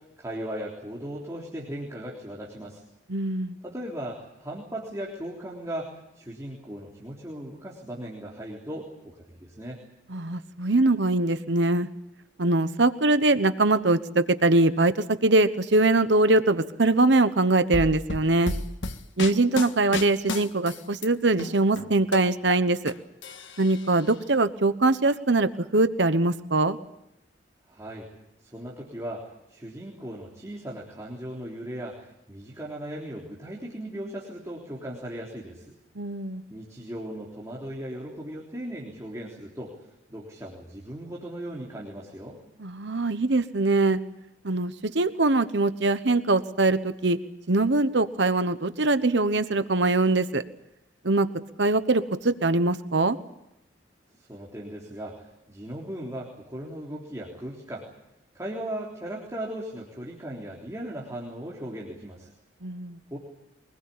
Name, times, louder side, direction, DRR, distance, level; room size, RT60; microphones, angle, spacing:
voice 1, 0.0-2.8 3.6-9.8 27.7-28.1 28.4-35.8 36.5-39.8 40.1-42.4 54.1-57.9 58.3-62.3 63.1-63.2, right 1 dB, 15° right, -4 dB, 3.6 m, -37 dB
voice 2, 3.1-3.6 10.1-11.9 12.4-14.9 15.2-18.5 19.2-22.9 23.6-26.8 36.0-36.4 42.6-44.0 44.4-47.2 47.5-50.4 51.0-51.3 51.6-53.2 62.6-63.0, right 2 dB, 70° right, 11 dB, 1.1 m, -22 dB
sound 1, 17.7-21.1 21.4-22.9 23.2-24.1, left 2 dB, 85° left, 1.6 m, -33 dB
24.0 x 20.0 x 8.6 m, 0.84 s
head